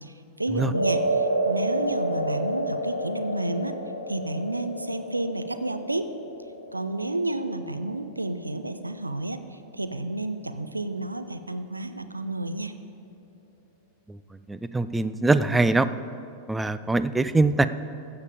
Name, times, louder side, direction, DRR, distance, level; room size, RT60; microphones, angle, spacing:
voice 1, 0.0-3.8 4.1-6.1 6.7-12.7, right 2 dB, 85° right, 10 dB, 0.5 m, -31 dB
sound 1, 0.7-9.1, right 1 dB, 90° left, 1.0 m, -30 dB
voice 2, 14.5-15.9 16.5-17.7, right 2 dB, 10° right, 13 dB, 0.4 m, -22 dB
14.5 x 7.2 x 4.9 m, 2.6 s
figure-of-eight pair, 90°, 0 cm